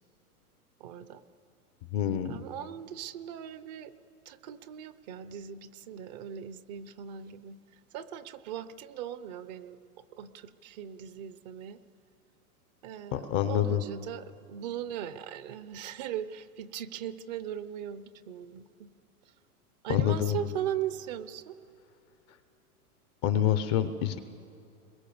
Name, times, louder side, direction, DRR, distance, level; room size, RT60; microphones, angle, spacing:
voice 1, 0.8-1.2 2.3-3.9 4.3-7.6 7.9-9.8 10.1-11.8 12.8-18.9 19.8-21.6, right 10 dB, 30° right, 14 dB, 0.6 m, -39 dB
voice 2, 1.9-2.4 13.1-13.8 19.9-20.4 23.2-24.2, left 10 dB, 20° left, 10 dB, 0.5 m, -27 dB
30.0 x 22.0 x 7.0 m, 2.8 s
supercardioid pair, 150°, 45 cm